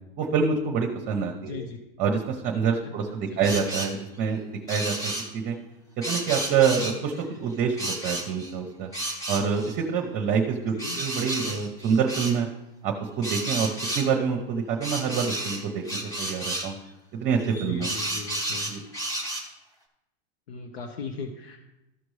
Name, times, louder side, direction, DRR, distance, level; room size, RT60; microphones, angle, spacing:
voice 1, 0.2-1.6 2.0-5.5 6.0-8.9 9.3-12.5 12.8-16.8 17.1-17.9 18.7-18.8, right 6 dB, 30° right, 3 dB, 0.8 m, -26 dB
voice 2, 1.5-1.8 2.8-2.9 3.3-3.4 10.7-11.0 17.6-18.7 20.5-21.6, left 4 dB, 80° left, 3 dB, 1.0 m, -38 dB
sound 1, 3.4-4.0 4.7-5.3 6.0-7.2 7.8-8.5 8.9-9.7 10.8-12.4 13.2-14.1 14.8-16.7 17.4-19.5, right 1 dB, 10° left, 1.1 m, -32 dB
14.0 x 5.2 x 3.2 m, 0.96 s
supercardioid pair, 155°, 31 cm